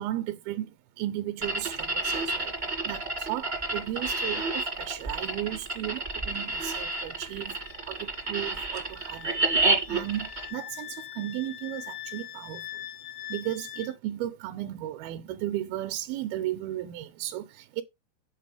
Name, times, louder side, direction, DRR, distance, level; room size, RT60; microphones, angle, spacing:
voice 1, 0.0-12.9 13.3-17.8, right 13 dB, 85° right, 2.5 m, -35 dB
sound 1, 1.4-10.5, right 2 dB, 35° right, 0.7 m, -29 dB
Wind instrument woodwind instrument, 6.7-13.9, left 12 dB, 75° left, 2.0 m, -43 dB
8.4 x 4.1 x 4.9 m
omnidirectional pair, 4.4 m